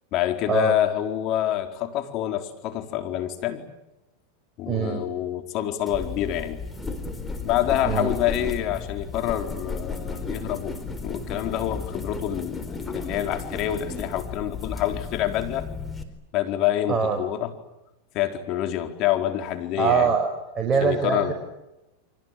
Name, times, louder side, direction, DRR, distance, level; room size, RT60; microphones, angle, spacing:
voice 1, 0.1-3.6 4.6-6.6 7.4-10.7 11.0-15.7 16.3-17.5 18.1-20.2 20.8-21.3, left 12 dB, 45° left, 6 dB, 4.5 m, -27 dB
voice 2, 4.7-5.0 7.8-8.1 16.9-17.2 19.8-21.3, right 6 dB, 25° right, 2 dB, 5.6 m, -23 dB
sound 1, 5.9-16.0, left 4 dB, 15° left, 4.2 m, -34 dB
30.0 x 25.0 x 7.8 m, 0.95 s
hypercardioid pair, 120°, 0 cm